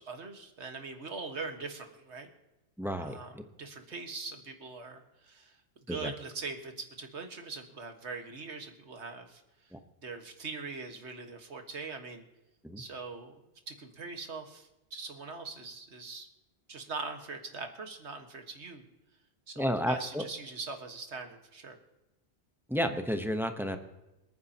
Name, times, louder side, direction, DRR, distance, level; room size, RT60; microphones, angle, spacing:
voice 1, 0.0-2.3 3.0-3.3 3.6-5.6 5.9-9.4 10.0-12.2 12.8-16.3 16.7-18.8 19.5-21.8, right 4 dB, 80° right, 5 dB, 1.8 m, -42 dB
voice 2, 2.8-3.4 5.9-6.1 9.7-9.8 12.6-12.8 19.6-20.2 22.7-23.8, equal, ahead, 7 dB, 0.8 m, -32 dB
27.0 x 9.5 x 2.9 m, 0.99 s
omnidirectional pair, 1.1 m